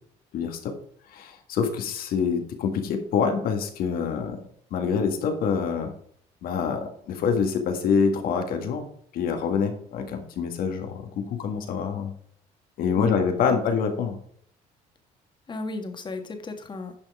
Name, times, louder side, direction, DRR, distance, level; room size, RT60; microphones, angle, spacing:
voice 1, 0.3-0.7 1.1-4.4 4.7-5.9 6.4-8.9 9.1-12.1 12.8-14.2, left 6 dB, 70° left, 5 dB, 1.7 m, -26 dB
voice 2, 12.9-13.8 15.5-16.9, left 3 dB, 30° left, 6 dB, 1.7 m, -35 dB
10.5 x 5.5 x 3.6 m, 0.64 s
cardioid pair, 100°, 16 cm